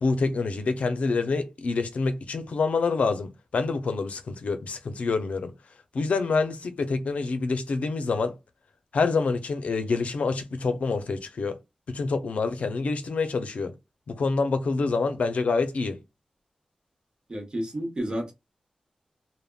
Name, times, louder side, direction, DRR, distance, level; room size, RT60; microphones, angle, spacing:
voice 1, 0.0-5.5 5.9-8.4 8.9-11.6 11.9-13.7 14.1-16.0, left 4 dB, 75° left, 0.5 m, -27 dB
voice 2, 17.3-18.3, equal, 40° right, 0.9 m, -31 dB
3.4 x 2.1 x 2.2 m
wide cardioid pair, 80°, 2 cm